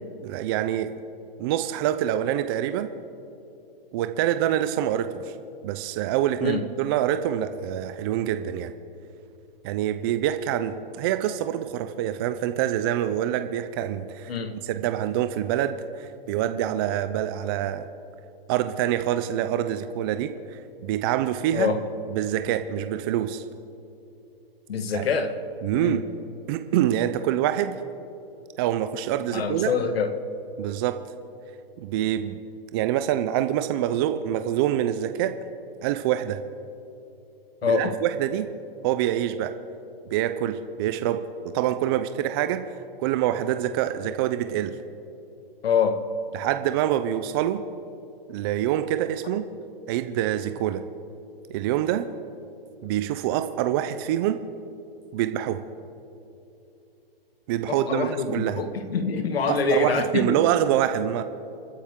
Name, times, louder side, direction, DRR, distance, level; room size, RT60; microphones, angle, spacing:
voice 1, 0.2-0.9 1.4-2.9 3.9-5.3 5.6-8.7 9.6-14.3 14.6-17.9 18.5-21.7 22.1-23.4 24.9-25.0 25.6-26.1 26.5-27.8 28.6-29.7 30.6-31.0 31.8-32.4 32.7-35.4 35.8-36.4 37.6-38.5 38.8-39.5 40.1-42.7 43.0-44.7 46.3-47.6 48.3-49.5 49.9-50.8 51.5-52.1 52.8-54.4 55.1-55.6 57.5-58.6 59.5-61.2, right 11 dB, 25° right, 9 dB, 0.4 m, -26 dB
voice 2, 21.5-21.8 24.7-25.3 25.7-26.0 29.3-30.1 37.6-38.0 45.6-46.0 57.7-60.4, left 5 dB, 80° left, 9 dB, 1.6 m, -25 dB
29.0 x 9.7 x 3.7 m, 2.8 s
hypercardioid pair, 145°, 30 cm